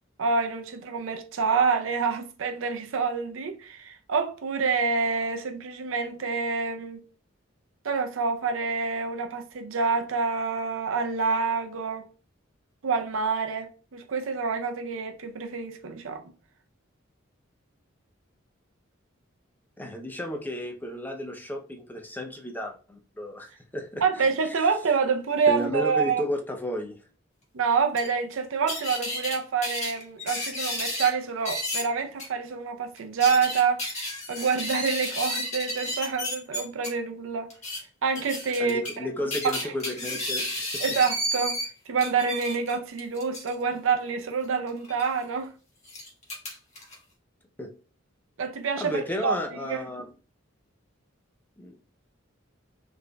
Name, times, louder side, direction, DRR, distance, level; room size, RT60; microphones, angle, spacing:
voice 1, 0.2-7.0 7.8-12.1 12.8-16.2 24.0-26.2 27.5-33.9 34.3-37.5 38.0-39.1 39.4-39.7 40.8-41.6 41.9-45.5 48.4-49.9, right 5 dB, 75° right, 0.5 m, -27 dB
voice 2, 19.8-24.6 25.5-27.0 38.6-40.8 47.6-47.7 48.8-50.1 51.6-51.7, equal, 10° left, 0.4 m, -33 dB
sound 1, 28.0-28.1 28.7-29.4 29.6-31.1 31.4-31.8 32.2-32.3 33.0-36.9 37.5-37.8 38.1-39.0 39.3-41.7 42.0-43.5 44.8-45.1 45.8-46.9, left 1 dB, 35° left, 1.2 m, -32 dB
3.9 x 3.3 x 2.2 m
head